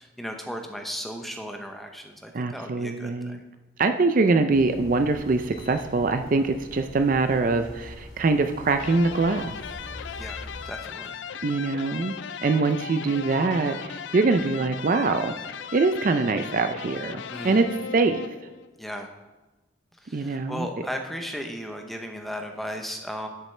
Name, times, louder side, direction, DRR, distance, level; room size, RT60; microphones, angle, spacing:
voice 1, 0.0-3.4 10.2-11.4 17.3-17.7 18.8-19.1 20.0-23.3, equal, ahead, 3 dB, 0.7 m, -36 dB
voice 2, 2.3-3.4 3.8-9.5 11.4-12.1 12.4-15.3 15.7-18.2 20.1-20.7, right 3 dB, 45° right, 8 dB, 0.4 m, -23 dB
sound 1, 4.5-10.7, left 1 dB, 90° left, 2.8 m, -44 dB
sound 2, 8.7-18.7, left 7 dB, 65° left, 0.4 m, -37 dB
10.5 x 8.0 x 3.3 m, 1.1 s
head